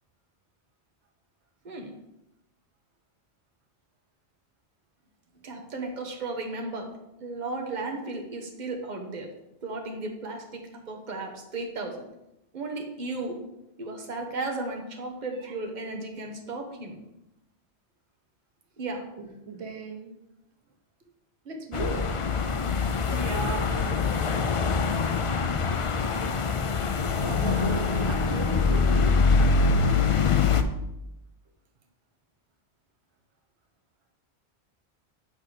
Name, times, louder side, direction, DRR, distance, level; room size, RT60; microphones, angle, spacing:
voice 1, 5.4-6.9 7.2-9.3 9.6-12.1 12.5-13.4 13.8-17.0 18.8-19.0 23.1-23.7, right 2 dB, 45° right, 2 dB, 1.2 m, -35 dB
voice 2, 19.2-20.1 21.4-22.2 23.1-24.1 27.1-29.2, right 4 dB, 90° right, 2 dB, 1.3 m, -37 dB
sound 1, 21.7-30.6, left 4 dB, 45° left, 0.4 m, -24 dB
6.5 x 5.7 x 5.0 m, 0.89 s
omnidirectional pair, 1.1 m